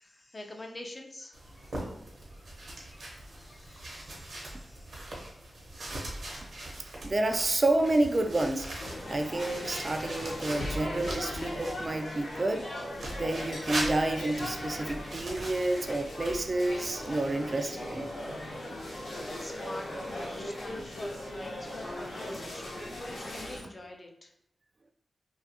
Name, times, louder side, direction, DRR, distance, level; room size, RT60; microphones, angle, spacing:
voice 1, 0.0-1.9 2.3-2.5 2.9-5.3 9.0-9.4 19.2-24.3, left 1 dB, 40° left, 2 dB, 0.5 m, -47 dB
sound 1, 1.3-11.9 12.9-17.4, right 1 dB, 70° right, 0.7 m, -41 dB
voice 2, 7.0-8.7 9.1-12.7 13.1-18.1, right 2 dB, 45° right, 6 dB, 0.3 m, -29 dB
sound 2, 8.8-23.6, left 1 dB, 85° left, 0.8 m, -38 dB
2.3 x 2.3 x 2.8 m, 0.73 s
cardioid pair, 50°, 0 cm